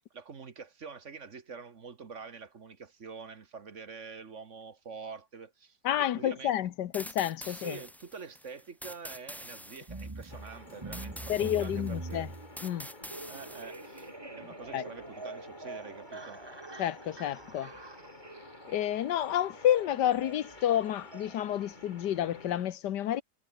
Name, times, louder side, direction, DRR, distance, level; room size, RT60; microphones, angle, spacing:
voice 1, 0.1-6.6 7.4-12.3 13.2-16.4, right 5 dB, 45° right, 1.7 m, -46 dB
voice 2, 5.8-7.8 11.3-12.3 12.6-12.9 14.7-14.8 16.8-17.7 18.7-23.2, left 11 dB, 85° left, 1.5 m, -30 dB
sound 1, 6.9-14.1, equal, ahead, 0.8 m, -46 dB
sound 2, 9.9-21.7, right 3 dB, 15° right, 1.1 m, -45 dB
sound 3, 10.3-22.6, left 2 dB, 25° left, 3.3 m, -52 dB
omnidirectional pair, 1.8 m